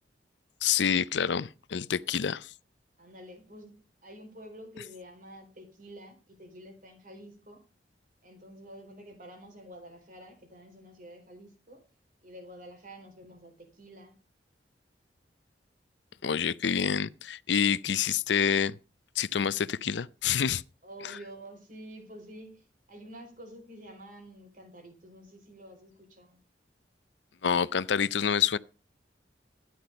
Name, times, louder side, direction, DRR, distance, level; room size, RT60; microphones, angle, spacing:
voice 1, 0.6-2.4 16.2-18.7 19.2-20.6 27.4-28.6, left 7 dB, 80° left, 0.6 m, -27 dB
voice 2, 2.0-2.4 3.0-7.6 8.2-11.8 12.2-14.2 20.8-26.4, right 1 dB, 50° right, 4.1 m, -49 dB
13.0 x 10.0 x 5.2 m
head